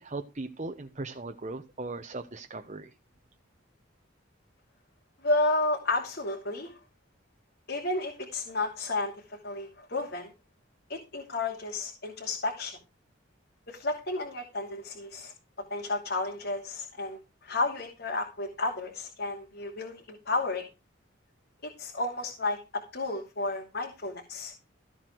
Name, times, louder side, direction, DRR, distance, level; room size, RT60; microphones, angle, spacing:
voice 1, 0.0-2.9, right 2 dB, 35° right, 6 dB, 1.0 m, -38 dB
voice 2, 5.2-6.8 7.7-10.3 10.9-12.8 13.7-15.3 15.7-20.6 21.6-24.5, left 2 dB, 55° left, 2 dB, 2.9 m, -32 dB
14.5 x 7.7 x 4.7 m, 0.28 s
head